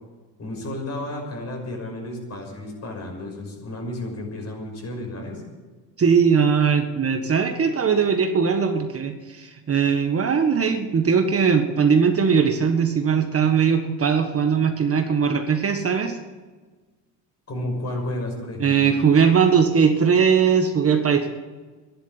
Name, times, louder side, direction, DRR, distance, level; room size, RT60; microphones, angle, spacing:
voice 1, 0.4-5.4 17.5-18.9, left 1 dB, 40° left, 2 dB, 6.2 m, -32 dB
voice 2, 6.0-16.1 18.6-21.3, right 6 dB, 35° right, 6 dB, 1.6 m, -20 dB
12.5 x 11.0 x 9.7 m, 1.3 s
supercardioid pair, 90°, 41 cm